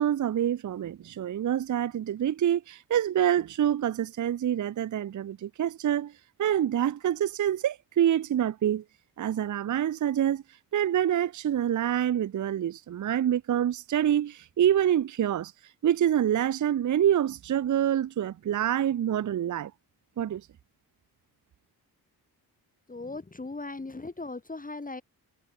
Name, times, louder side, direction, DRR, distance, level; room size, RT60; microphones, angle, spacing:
voice 1, 0.0-6.1 6.4-8.8 9.2-10.4 10.7-15.5 15.8-19.7 20.2-20.4, right 10 dB, 50° right, 0.6 m, -26 dB
voice 2, 22.9-25.0, left 3 dB, 20° left, 3.5 m, -38 dB
cardioid pair, 105°, 39 cm